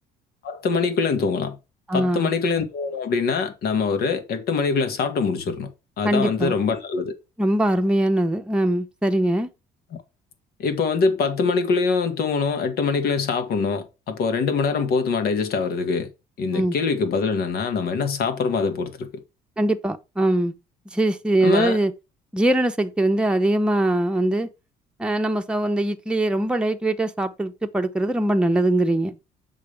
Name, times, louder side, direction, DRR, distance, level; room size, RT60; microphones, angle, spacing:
voice 1, 0.4-1.6 1.9-5.7 6.0-7.1 10.6-16.1 16.4-19.1 21.4-21.8, left 5 dB, 65° left, 1.9 m, -23 dB
voice 2, 1.9-2.3 6.0-6.6 7.4-9.5 16.5-16.8 19.6-20.5 20.9-21.9 22.3-24.5 25.0-29.1, right 1 dB, 5° right, 1.0 m, -22 dB
8.3 x 6.3 x 3.6 m
cardioid pair, 110°, 17 cm